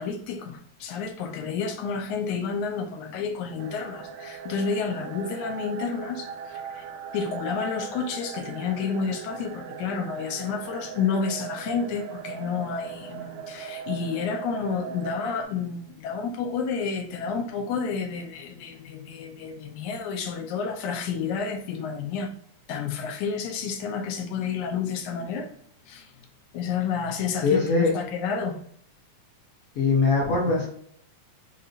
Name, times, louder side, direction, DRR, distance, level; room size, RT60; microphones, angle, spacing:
voice 1, 0.0-6.9 7.1-22.4 22.7-25.5 25.9-26.1 26.5-27.6 27.9-28.6, left 6 dB, 80° left, 2.0 m, -30 dB
sound 1, 3.6-15.4, right 8 dB, 80° right, 1.8 m, -39 dB
voice 2, 27.4-27.9 29.8-30.7, left 4 dB, 60° left, 1.7 m, -21 dB
6.4 x 2.8 x 2.5 m
omnidirectional pair, 3.5 m